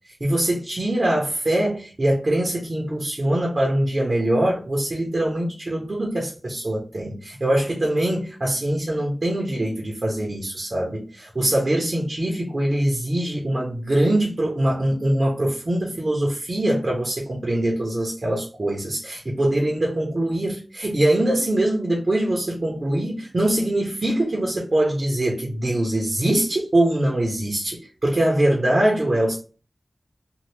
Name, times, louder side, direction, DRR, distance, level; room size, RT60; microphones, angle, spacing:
voice 1, 0.2-29.4, right 1 dB, 45° right, 0.9 m, -23 dB
2.8 x 2.5 x 3.2 m
wide cardioid pair, 60°, 0 cm